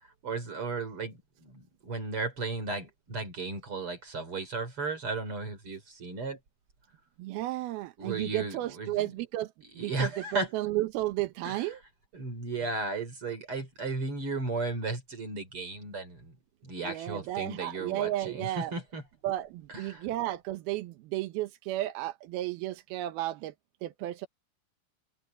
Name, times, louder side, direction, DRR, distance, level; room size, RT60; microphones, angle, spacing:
voice 1, 0.0-6.4 8.0-9.1 9.8-10.5 11.4-11.6 12.1-16.3 16.6-19.0 19.7-20.1, right 3 dB, 30° right, 3.9 m, -35 dB
voice 2, 7.2-11.8 16.8-18.7 19.2-23.5 23.8-24.3, right 15 dB, 75° right, 2.3 m, -33 dB
omnidirectional pair, 5.6 m